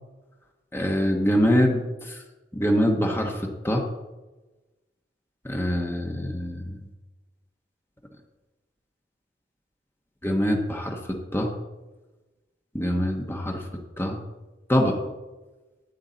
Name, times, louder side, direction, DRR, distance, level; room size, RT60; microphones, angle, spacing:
voice 1, 0.7-2.2 2.5-3.9 5.4-6.8 10.2-11.0 11.3-11.6 12.7-13.6 14.0-14.2 14.7-15.0, equal, 15° left, 1 dB, 1.1 m, -24 dB
13.5 x 9.0 x 4.0 m, 1.1 s
head